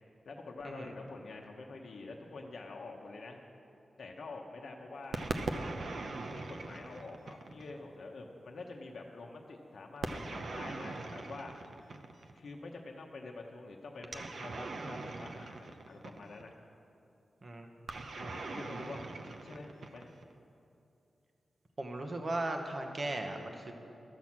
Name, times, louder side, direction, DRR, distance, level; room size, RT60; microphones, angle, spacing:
voice 1, 0.2-3.4 4.0-5.2 6.1-11.5 12.3-16.5 18.1-20.1, left 3 dB, 65° left, 1 dB, 0.9 m, -47 dB
sound 1, 5.1-7.8 10.0-12.4 14.0-16.5 17.9-20.3, right 3 dB, 65° right, 0.7 m, -41 dB
voice 2, 21.8-23.7, right 2 dB, 35° right, 4 dB, 0.9 m, -37 dB
12.5 x 6.1 x 7.3 m, 2.7 s
wide cardioid pair, 145°, 0 cm